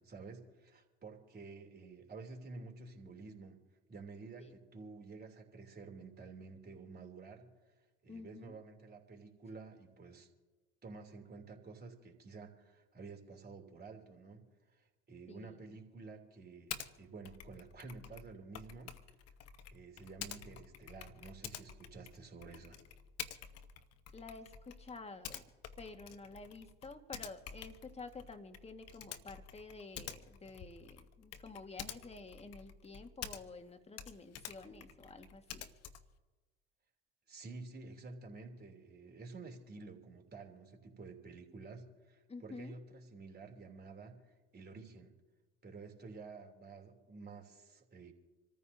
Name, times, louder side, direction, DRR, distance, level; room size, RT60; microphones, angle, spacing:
voice 1, 0.0-3.6 3.9-7.5 8.0-10.3 10.8-18.9 19.7-22.8 37.3-45.1 45.6-48.1, right 4 dB, 30° right, 2 dB, 3.1 m, -51 dB
voice 2, 8.1-8.6 15.3-15.6 24.1-25.4 25.8-35.7 42.3-42.7, left 3 dB, 20° left, 6 dB, 1.7 m, -50 dB
Typing, 16.7-16.9 17.2-33.7 33.9-36.2, left 9 dB, 55° left, 1.1 m, -49 dB
27.0 x 14.0 x 2.8 m, 1.3 s
hypercardioid pair, 70°, 30 cm